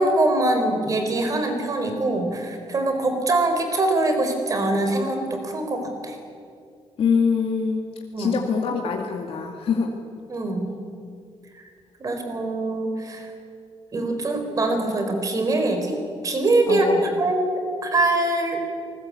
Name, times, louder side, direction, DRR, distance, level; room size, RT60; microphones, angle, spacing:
voice 1, 0.0-6.2 8.1-8.3 10.3-10.7 11.5-11.6 12.0-13.3 13.9-15.9 16.2-18.6, right 2 dB, 30° right, 5 dB, 4.1 m, -23 dB
voice 2, 7.0-7.8 8.2-9.9 16.7-17.1, left 5 dB, 55° left, 1 dB, 2.2 m, -24 dB
27.0 x 20.5 x 8.6 m, 2.3 s
wide cardioid pair, 175°, 11 cm